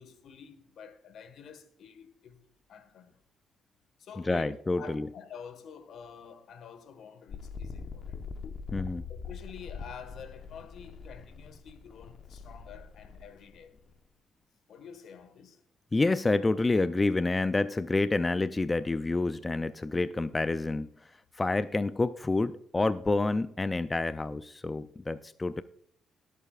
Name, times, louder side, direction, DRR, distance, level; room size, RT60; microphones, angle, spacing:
voice 1, 0.0-2.4 2.7-3.1 4.0-8.2 9.1-13.7 14.7-15.6, left 7 dB, 70° left, 1.5 m, -48 dB
voice 2, 4.2-5.1 8.7-9.0 15.9-25.6, left 3 dB, 25° left, 0.5 m, -28 dB
sound 1, 7.3-13.9, left 5 dB, 50° left, 1.1 m, -43 dB
21.0 x 8.3 x 2.4 m
supercardioid pair, 65°, 0 cm